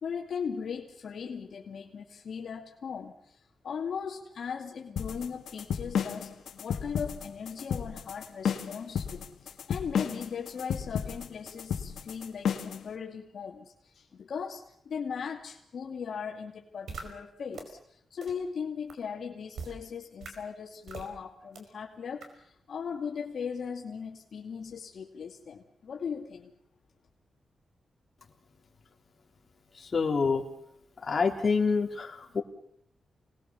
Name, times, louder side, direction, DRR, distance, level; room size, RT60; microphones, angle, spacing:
voice 1, 0.0-3.4 3.6-6.3 6.6-26.5, left 6 dB, 65° left, 1 dB, 2.6 m, -38 dB
sound 1, 5.0-12.8, left 8 dB, 85° left, 1.8 m, -32 dB
sound 2, 16.9-17.0 17.5-17.6 18.2-18.3 18.9-19.0 19.5-19.7 20.2-20.3 20.9-21.1 21.5-21.6 22.2-22.3, right 5 dB, 80° right, 5.1 m, -40 dB
voice 2, 29.9-30.4 31.0-32.4, left 4 dB, 40° left, 2 dB, 3.5 m, -26 dB
28.5 x 20.0 x 7.1 m, 0.70 s
wide cardioid pair, 115°, 0 cm